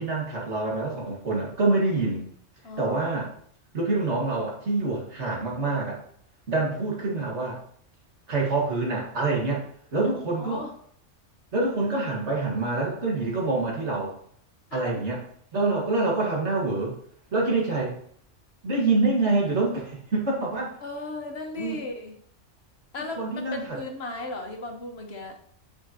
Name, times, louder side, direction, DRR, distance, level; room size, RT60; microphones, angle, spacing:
voice 1, 0.0-2.3 2.8-3.3 3.7-6.0 6.5-7.6 8.3-9.6 9.9-10.6 11.5-14.2 14.7-15.2 15.5-17.0 17.3-18.0 18.6-20.8 21.6-21.8 23.2-23.8, right 3 dB, 65° right, -3 dB, 2.1 m, -26 dB
voice 2, 2.6-3.1 10.2-10.7 14.7-14.9 20.8-22.2 22.9-25.4, left 2 dB, 60° left, 3 dB, 1.4 m, -36 dB
8.0 x 5.9 x 2.9 m, 0.62 s
omnidirectional pair, 1.3 m